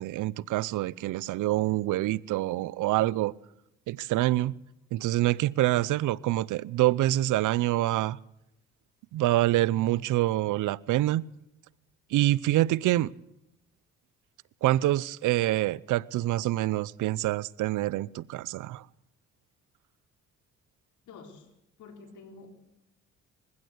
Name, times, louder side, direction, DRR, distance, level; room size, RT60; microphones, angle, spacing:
voice 1, 0.0-3.3 3.9-4.5 4.9-8.2 9.1-11.3 12.1-13.1 14.6-18.8, right 15 dB, 80° right, 0.7 m, -26 dB
voice 2, 21.1-21.5 21.8-22.5, left 4 dB, 80° left, 4.2 m, -48 dB
22.0 x 16.0 x 7.9 m
cardioid pair, 90°, 30 cm